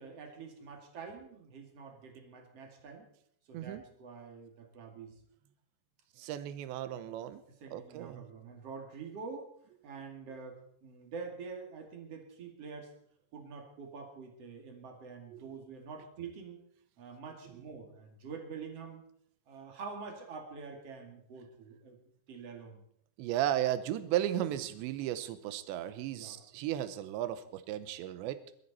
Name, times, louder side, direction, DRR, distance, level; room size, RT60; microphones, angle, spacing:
voice 1, 0.0-3.1 3.5-5.2 7.6-9.5 9.8-12.9 13.3-16.6 17.0-19.0 19.5-22.0 22.3-22.8 26.1-26.4, right 5 dB, 45° right, 3 dB, 2.7 m, -46 dB
voice 2, 6.2-7.4 7.7-8.3 15.3-15.4 23.2-28.4, right 12 dB, 90° right, 12 dB, 3.1 m, -35 dB
21.5 x 13.0 x 4.2 m, 0.67 s
omnidirectional pair, 5.0 m